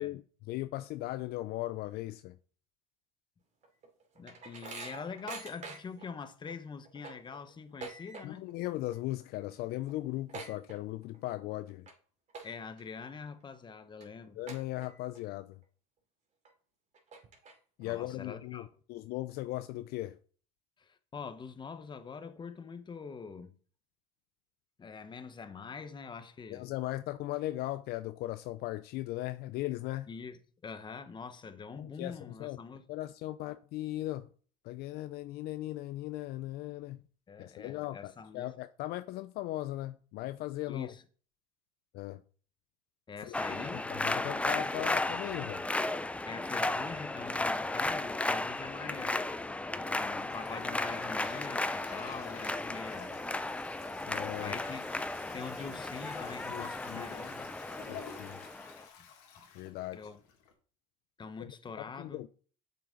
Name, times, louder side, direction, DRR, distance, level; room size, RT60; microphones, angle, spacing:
voice 1, 0.0-2.4 8.2-11.9 14.4-15.6 17.8-20.2 26.5-30.1 31.8-32.6 32.9-34.3 34.6-37.0 37.4-40.9 41.9-42.2 43.3-45.7 54.1-54.6 56.5-57.3 57.9-58.4 59.5-60.0 61.4-61.5 61.8-62.3, left 16 dB, 60° left, 0.5 m, -38 dB
sound 1, 3.6-6.1 6.5-6.6 6.8-8.6 8.8-9.2 9.5-9.6 9.8-11.2 11.7-11.9 12.3-12.8 13.3-13.4 14.0-14.1 14.5-15.2 15.6-15.7 16.4-16.5 16.9-17.8, right 4 dB, 40° right, 2.6 m, -46 dB
voice 2, 4.1-8.5 12.4-14.4 17.8-18.7 20.8-23.5 24.8-26.7 30.1-32.9 37.3-38.5 40.7-41.0 43.1-43.8 46.2-49.2 49.7-53.2 54.4-54.8 55.3-57.5 59.9-60.2 61.2-62.2, left 5 dB, 25° left, 0.9 m, -44 dB
sound 2, 43.3-58.8, left 2 dB, 5° left, 0.4 m, -35 dB
Toilet flush, 48.7-60.5, left 7 dB, 85° left, 2.0 m, -50 dB
7.1 x 5.9 x 3.8 m
supercardioid pair, 95°, 18 cm